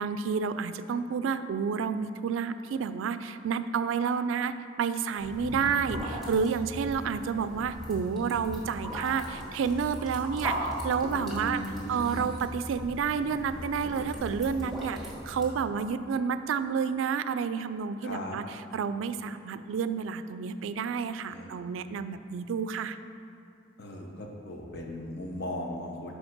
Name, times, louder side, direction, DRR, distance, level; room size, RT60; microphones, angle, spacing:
voice 1, 0.0-11.6 11.9-18.4 18.7-23.0, right 6 dB, 70° right, 13 dB, 0.3 m, -30 dB
sound 1, 5.2-15.5, equal, ahead, 1.7 m, -38 dB
voice 2, 11.1-12.2 18.0-18.4 21.3-21.7 23.8-26.1, left 1 dB, 55° left, 1 dB, 0.9 m, -37 dB
5.2 x 4.9 x 5.9 m, 2.5 s
head